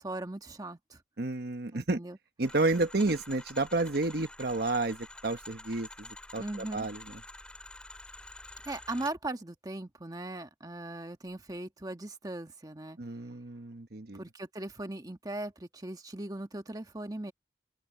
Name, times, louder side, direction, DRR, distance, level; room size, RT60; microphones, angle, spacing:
voice 1, 0.0-1.0 1.7-2.2 6.4-6.9 8.6-13.0 14.1-17.3, right 2 dB, 20° right, 1.3 m, -39 dB
voice 2, 1.2-2.0 2.4-6.1 6.3-6.4 6.7-7.0 13.0-14.2, right 2 dB, 60° right, 1.2 m, -30 dB
sound 1, 2.4-9.2, left 2 dB, 5° left, 2.2 m, -48 dB
open air
head